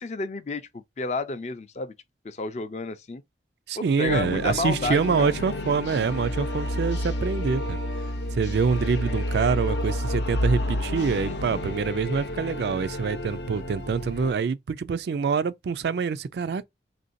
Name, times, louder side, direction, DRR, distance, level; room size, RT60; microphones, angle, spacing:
voice 1, 0.0-1.9 2.2-3.2 3.8-5.3 11.1-11.6, left 3 dB, 40° left, 0.4 m, -31 dB
voice 2, 3.7-7.8 8.3-16.6, right 5 dB, 70° right, 0.3 m, -26 dB
sound 1, 4.1-14.3, left 1 dB, 80° left, 0.7 m, -30 dB
3.7 x 2.6 x 2.5 m
head